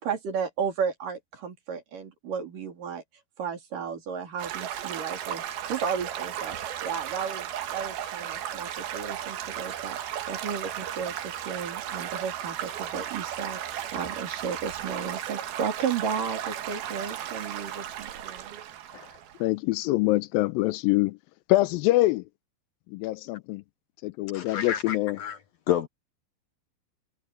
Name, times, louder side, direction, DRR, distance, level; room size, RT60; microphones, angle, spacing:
voice 1, 0.0-3.0 3.4-6.6 6.8-10.0 10.3-18.6, right 6 dB, 65° right, 5.1 m, -33 dB
Stream / Gurgling / Trickle dribble, 4.4-19.5, right 10 dB, 90° right, 3.5 m, -35 dB
voice 2, 19.4-21.2 21.5-22.2 22.9-23.6 24.0-25.2, left 18 dB, 85° left, 2.3 m, -24 dB
voice 3, 24.3-25.4 25.7-25.9, left 10 dB, 65° left, 1.7 m, -29 dB
omnidirectional pair, 4.2 m